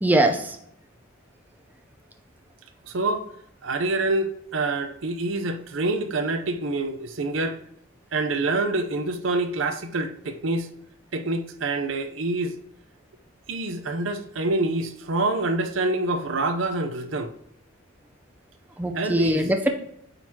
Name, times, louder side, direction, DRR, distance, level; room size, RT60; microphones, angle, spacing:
voice 1, 0.0-0.6 18.8-19.7, right 1 dB, 10° right, 0.6 m, -22 dB
voice 2, 2.8-3.3 3.6-7.6 8.1-10.7 11.1-12.6 13.5-17.3 18.9-19.5, right 2 dB, 65° right, 0.6 m, -26 dB
8.7 x 4.0 x 2.8 m
head